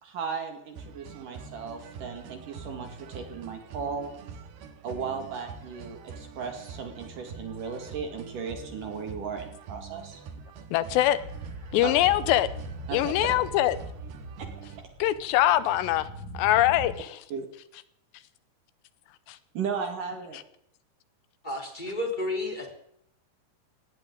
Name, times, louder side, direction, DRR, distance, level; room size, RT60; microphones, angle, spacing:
voice 1, 0.0-4.1 4.8-10.2 11.8-11.9 12.9-13.2 14.6-14.9 17.3-17.5 19.5-20.4, right 5 dB, 55° right, 5 dB, 3.2 m, -36 dB
sound 1, 0.8-14.8, right 5 dB, 70° right, 3.4 m, -44 dB
voice 2, 10.7-11.2 11.7-12.5 12.9-13.8 15.0-16.1 16.3-17.1 19.3-19.4, left 13 dB, 80° left, 15 dB, 2.9 m, -23 dB
sound 2, 11.2-16.9, right 1 dB, 25° right, 4.4 m, -41 dB
voice 3, 21.4-22.7, left 1 dB, 10° left, 1 dB, 3.4 m, -31 dB
19.0 x 17.5 x 3.9 m, 0.69 s
omnidirectional pair, 5.0 m